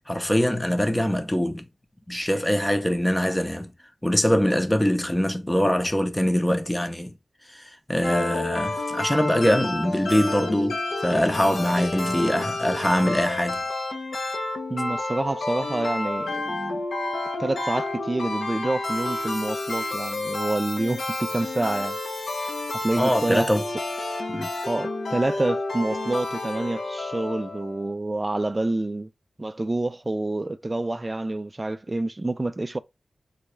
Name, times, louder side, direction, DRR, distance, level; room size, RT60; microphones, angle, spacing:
voice 1, 0.1-1.6 2.1-3.7 4.0-7.1 7.5-13.6 23.0-23.6 24.3-24.5, equal, 10° left, 0.6 m, -23 dB
sound 1, 8.0-27.9, left 2 dB, 70° left, 0.7 m, -30 dB
voice 2, 14.7-16.8 17.4-22.0 22.8-23.5 24.7-29.1 29.4-32.8, right 2 dB, 25° right, 0.3 m, -27 dB
4.0 x 2.3 x 3.0 m
wide cardioid pair, 80°, 0 cm